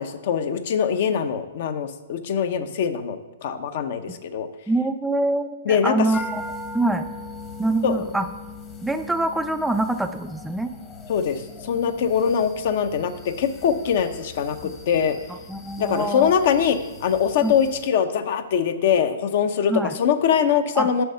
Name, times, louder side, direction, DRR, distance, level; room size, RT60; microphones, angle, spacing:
voice 1, 0.0-4.5 5.7-5.9 7.8-8.1 11.1-14.6 14.9-15.2 15.8-19.7 20.0-21.0, left 7 dB, 55° left, 10 dB, 0.7 m, -22 dB
voice 2, 4.7-6.4 6.7-7.0 7.6-8.3 8.8-10.7 14.6-14.7 15.5-16.3 17.4-17.5 19.7-19.9 20.8-20.9, right 2 dB, 5° right, 7 dB, 0.3 m, -24 dB
sound 1, 6.1-17.9, left 3 dB, 20° left, 1.0 m, -40 dB
7.8 x 5.6 x 5.5 m, 1.1 s
hypercardioid pair, 145°, 0 cm